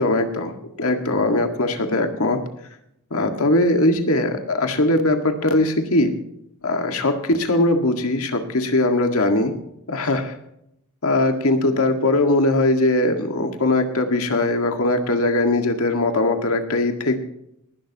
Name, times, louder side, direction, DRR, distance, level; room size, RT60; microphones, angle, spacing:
voice 1, 0.0-2.4 3.1-6.1 6.6-9.5 9.9-10.4 11.0-17.2, left 2 dB, 75° left, 5 dB, 1.8 m, -20 dB
19.5 x 12.0 x 2.9 m, 0.77 s
head